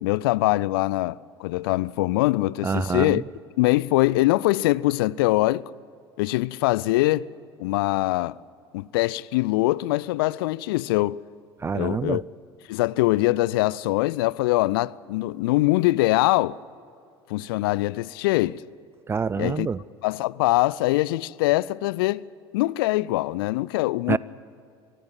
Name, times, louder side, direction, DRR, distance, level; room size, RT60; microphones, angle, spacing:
voice 1, 0.0-3.2 3.6-5.7 6.2-7.3 7.6-8.4 8.7-11.2 11.7-12.2 12.7-16.6 17.3-18.6 19.4-19.7 20.0-22.3 22.5-24.2, left 19 dB, 60° left, 0.5 m, -23 dB
voice 2, 2.6-3.2 11.6-12.2 19.1-19.8 24.1-24.2, right 5 dB, 20° right, 0.4 m, -26 dB
24.0 x 15.0 x 8.9 m
figure-of-eight pair, 70°, 14 cm